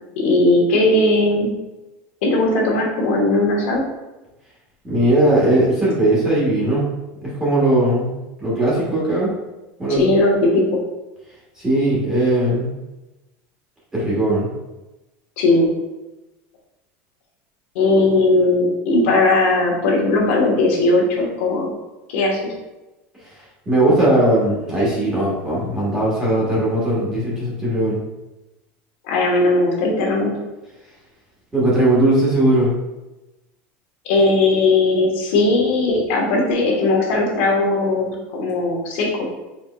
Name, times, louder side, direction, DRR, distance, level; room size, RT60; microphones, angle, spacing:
voice 1, 0.2-1.5 2.2-3.8 9.9-10.6 15.4-15.7 17.7-21.7 22.1-22.5 29.1-30.4 34.0-39.3, left 2 dB, 65° left, -2 dB, 1.1 m, -18 dB
voice 2, 4.8-6.9 7.2-8.1 8.4-9.3 9.8-10.0 11.6-12.7 13.9-14.5 23.2-28.0 31.5-32.7, right 1 dB, 10° right, -7 dB, 1.2 m, -18 dB
4.3 x 4.2 x 2.2 m, 1.0 s
supercardioid pair, 180°, 7 cm